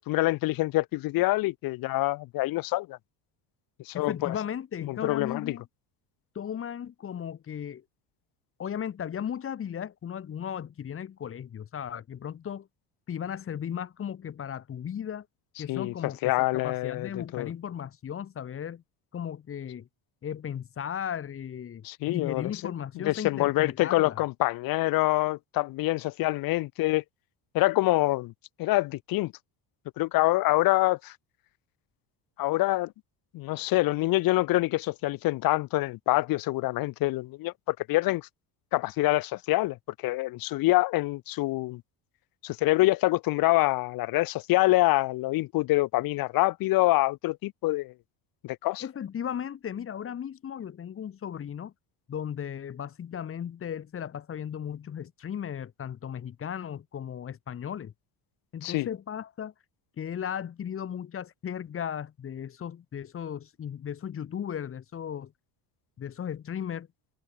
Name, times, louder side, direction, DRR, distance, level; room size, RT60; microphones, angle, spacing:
voice 1, 0.0-3.0 3.8-4.3 4.8-5.6 15.7-17.5 21.8-22.5 23.0-27.0 27.5-28.3 28.6-29.3 30.0-31.1 32.4-32.9 33.3-38.3 38.7-39.8 40.0-41.8 42.4-47.9 48.4-48.8 58.6-58.9, left 19 dB, 55° left, 0.7 m, -26 dB
voice 2, 3.9-5.7 6.4-7.8 8.6-12.7 13.1-15.3 15.6-18.8 19.1-19.9 20.2-24.2 48.8-51.7 52.1-57.9 58.5-59.5 60.0-65.3 66.0-66.9, left 8 dB, 30° left, 2.1 m, -36 dB
cardioid pair, 160°, 43 cm